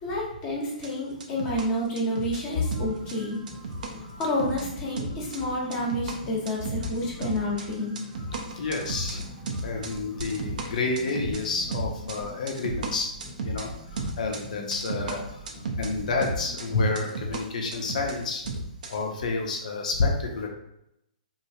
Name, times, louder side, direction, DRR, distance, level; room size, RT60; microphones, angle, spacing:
voice 1, 0.0-3.4 4.2-7.9, left 1 dB, 25° left, -4 dB, 1.0 m, -29 dB
sound 1, 0.7-1.7 2.0-2.4 2.7-3.9 4.2-4.7 5.0-5.5 5.7-16.7 16.9-17.4 17.7-19.0, right 2 dB, 65° right, 0.6 m, -34 dB
sound 2, 2.6-17.1, left 1 dB, 10° right, 0.9 m, -46 dB
voice 2, 8.6-9.3 9.6-13.1 13.4-15.4 15.8-18.5 18.9-20.5, left 3 dB, 65° left, 1 dB, 0.7 m, -29 dB
3.1 x 2.7 x 2.7 m, 0.81 s
hypercardioid pair, 140°, 5 cm